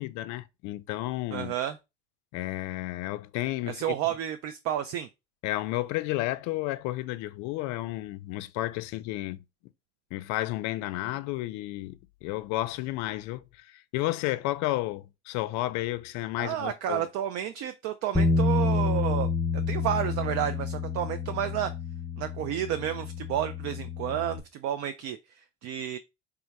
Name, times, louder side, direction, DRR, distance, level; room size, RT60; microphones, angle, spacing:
voice 1, 0.0-1.5 2.3-4.0 5.4-9.4 10.1-17.0, left 17 dB, 60° left, 0.4 m, -32 dB
voice 2, 1.3-1.8 3.7-5.1 16.4-19.3 19.7-21.7 22.2-26.0, right 11 dB, 50° right, 0.4 m, -31 dB
Bass guitar, 18.1-24.4, left 4 dB, 5° left, 0.5 m, -29 dB
3.5 x 2.8 x 2.2 m
hypercardioid pair, 65°, 32 cm